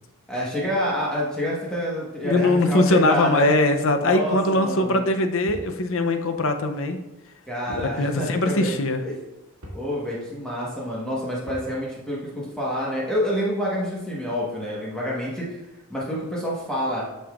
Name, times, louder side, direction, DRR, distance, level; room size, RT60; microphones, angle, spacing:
voice 1, 0.3-3.5 4.0-5.1 7.5-8.8 9.0-9.1 9.7-15.4 15.9-17.0, equal, 5° left, -6 dB, 1.3 m, -27 dB
voice 2, 2.2-7.0 7.7-9.0, left 2 dB, 65° left, 6 dB, 0.6 m, -21 dB
sound 1, 5.5-5.8 7.7-8.0 8.3-8.4 9.6-9.9 11.5-11.8, equal, 70° right, 1.7 m, -39 dB
8.6 x 5.6 x 2.5 m, 1.0 s
head